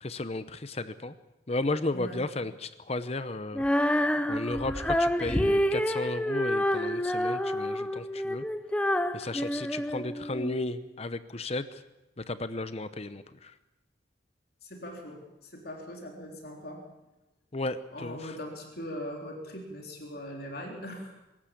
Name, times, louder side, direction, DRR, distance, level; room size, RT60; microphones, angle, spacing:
voice 1, 0.0-1.1 1.5-3.6 4.3-8.4 9.1-11.6 12.2-13.5 17.5-18.3, left 2 dB, 35° left, 12 dB, 0.8 m, -34 dB
Female singing, 3.5-10.6, equal, 5° left, 0.7 m, -28 dB
voice 2, 14.6-16.8 17.9-21.2, equal, 55° left, 1 dB, 3.8 m, -40 dB
24.5 x 14.0 x 8.5 m, 0.97 s
head